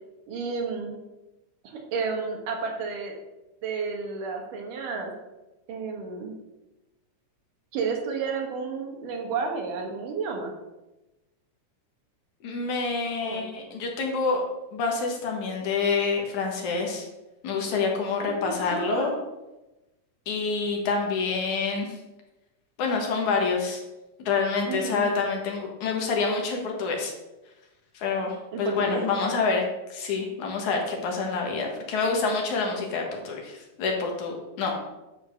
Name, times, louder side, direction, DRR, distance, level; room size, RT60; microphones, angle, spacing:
voice 1, 0.3-1.0 1.6-3.1 3.6-5.1 5.7-6.3 7.7-10.5 13.2-13.5 18.2-19.1 24.7-25.1 28.5-29.1, right 5 dB, 80° right, 2 dB, 3.2 m, -31 dB
voice 2, 12.4-14.4 14.7-17.1 17.4-19.1 20.3-22.0 22.8-23.8 24.2-27.1 27.9-29.6 29.9-34.8, left 4 dB, 70° left, 1 dB, 2.9 m, -27 dB
11.0 x 4.9 x 6.4 m, 1.0 s
omnidirectional pair, 3.7 m